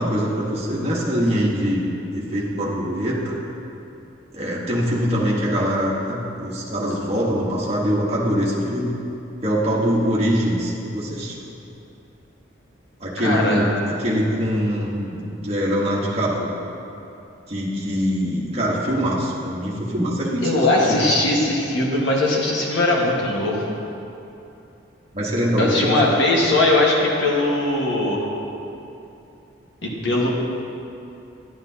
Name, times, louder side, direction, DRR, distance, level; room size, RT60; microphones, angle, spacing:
voice 1, 0.0-3.4 4.3-8.9 9.4-11.4 13.0-13.7 14.0-16.5 17.5-20.5 20.9-21.3 25.1-26.0, equal, 30° right, -6 dB, 1.2 m, -23 dB
voice 2, 13.2-13.7 20.4-23.6 25.6-28.3 29.8-30.3, left 2 dB, 65° left, -3 dB, 1.5 m, -20 dB
10.5 x 9.8 x 2.8 m, 2.8 s
head